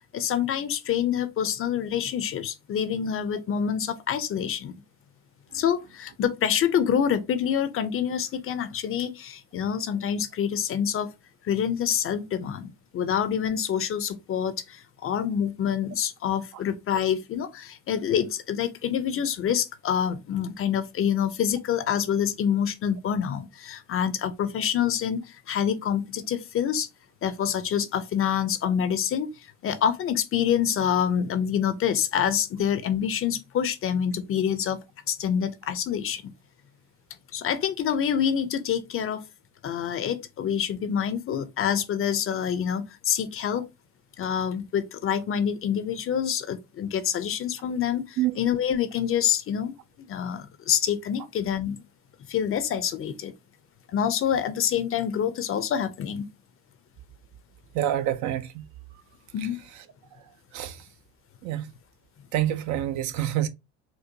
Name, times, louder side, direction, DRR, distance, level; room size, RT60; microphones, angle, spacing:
voice 1, 0.1-4.7 5.5-11.1 11.4-26.9 27.2-29.3 29.6-34.8 35.1-36.2 37.3-39.2 39.6-43.7 44.2-49.7 50.1-51.8 52.3-53.3 53.9-56.3 59.3-59.6, left 8 dB, 40° left, 0.6 m, -26 dB
voice 2, 57.7-58.6 60.5-60.8 61.4-61.7 62.3-63.5, right 12 dB, 55° right, 0.6 m, -27 dB
4.4 x 2.2 x 2.7 m
hypercardioid pair, 70°, 35 cm